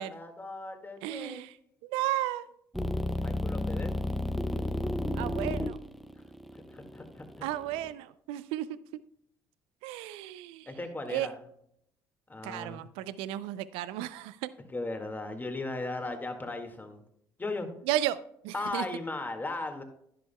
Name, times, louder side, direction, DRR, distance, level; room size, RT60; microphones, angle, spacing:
voice 1, 0.0-1.5 3.2-3.9 6.7-7.5 10.7-11.4 12.3-12.8 14.7-17.0 17.4-17.7 18.5-19.8, left 2 dB, 20° left, 5 dB, 1.9 m, -37 dB
voice 2, 1.0-1.5 1.8-2.5 5.2-5.8 7.4-8.7 9.8-10.7 11.1-11.3 12.4-14.5 17.9-18.2 18.4-18.8, right 14 dB, 75° right, 16 dB, 0.5 m, -33 dB
sound 1, 2.7-7.9, left 1 dB, ahead, 0.8 m, -32 dB
11.0 x 10.5 x 2.3 m, 0.71 s
hypercardioid pair, 65°, 10 cm